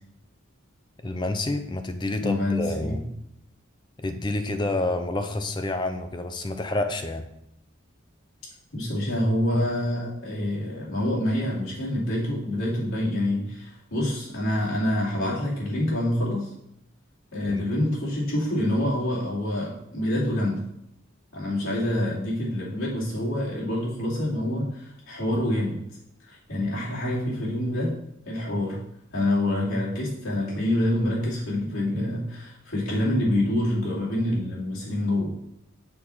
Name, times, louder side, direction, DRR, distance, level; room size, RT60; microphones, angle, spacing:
voice 1, 1.0-3.0 4.0-7.2 17.5-17.7, left 2 dB, 20° left, 7 dB, 0.5 m, -28 dB
voice 2, 2.2-3.0 8.7-16.5 17.3-20.6 21.3-25.8 26.3-27.9 28.2-28.8 29.1-35.3, left 1 dB, 80° left, -6 dB, 2.8 m, -26 dB
6.6 x 4.2 x 5.6 m, 0.78 s
head